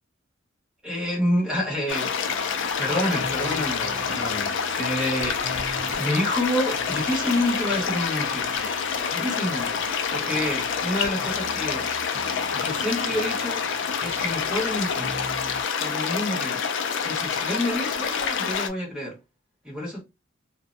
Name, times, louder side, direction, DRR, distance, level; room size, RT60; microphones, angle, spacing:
voice 1, 0.8-2.2 2.8-5.4 5.9-8.5 9.1-9.8 10.1-11.9 12.5-13.7 14.0-15.1 15.8-16.6 17.0-19.2 19.6-20.0, left 1 dB, 5° right, 1.3 m, -28 dB
sound 1, 1.9-18.7, left 6 dB, 60° left, 0.4 m, -27 dB
sound 2, 2.2-15.6, right 2 dB, 45° right, 0.5 m, -41 dB
2.5 x 2.2 x 2.5 m
head